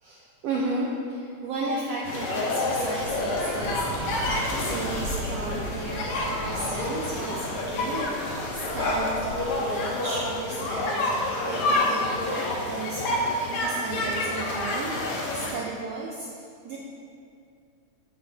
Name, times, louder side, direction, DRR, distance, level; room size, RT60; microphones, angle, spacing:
voice 1, 0.0-16.8, right 2 dB, 75° right, -3 dB, 1.5 m, -34 dB
sound 1, 2.0-15.5, left 2 dB, 70° left, 2.3 m, -28 dB
sound 2, 3.5-9.7 10.0-10.1, right 1 dB, 35° right, 1.5 m, -40 dB
7.9 x 6.7 x 4.1 m, 2.4 s
omnidirectional pair, 3.6 m